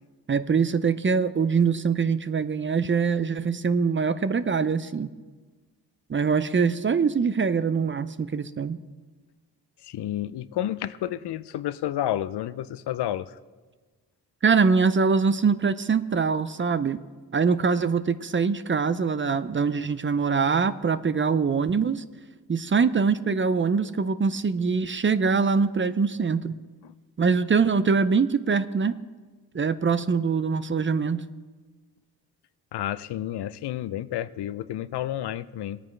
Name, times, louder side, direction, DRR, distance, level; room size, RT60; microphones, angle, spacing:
voice 1, 0.3-5.1 6.1-8.8 14.4-17.0 17.3-22.0 22.5-26.5 27.2-28.9 29.5-31.2, right 5 dB, 30° right, 14 dB, 0.5 m, -23 dB
voice 2, 9.8-13.4 26.8-26.9 32.7-35.8, left 12 dB, 75° left, 16 dB, 0.6 m, -30 dB
19.0 x 9.1 x 3.3 m, 1.4 s
cardioid pair, 70°, 40 cm